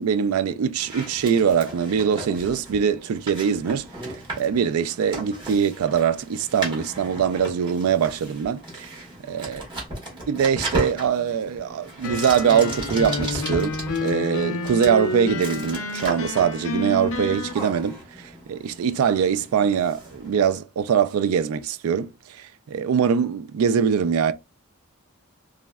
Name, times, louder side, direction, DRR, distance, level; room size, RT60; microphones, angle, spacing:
voice 1, 0.0-9.6 10.3-24.3, right 7 dB, 90° right, 0.3 m, -23 dB
sound 1, 0.8-20.6, right 1 dB, 20° right, 1.1 m, -36 dB
sound 2, 12.0-17.5, left 2 dB, 75° left, 0.6 m, -29 dB
3.6 x 2.0 x 2.2 m
head